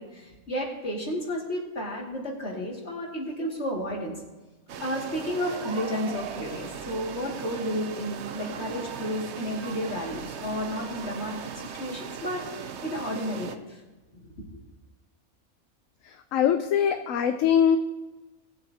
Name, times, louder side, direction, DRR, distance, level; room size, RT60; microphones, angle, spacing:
voice 1, 0.0-4.1 4.8-11.3 11.7-13.8 14.2-14.3, equal, 50° left, -2 dB, 2.5 m, -32 dB
sound 1, 4.7-13.6, right 7 dB, 60° right, 0.9 m, -38 dB
voice 2, 16.0-17.8, left 8 dB, 70° left, 7 dB, 1.0 m, -23 dB
19.0 x 8.0 x 2.8 m, 1.2 s
omnidirectional pair, 1.5 m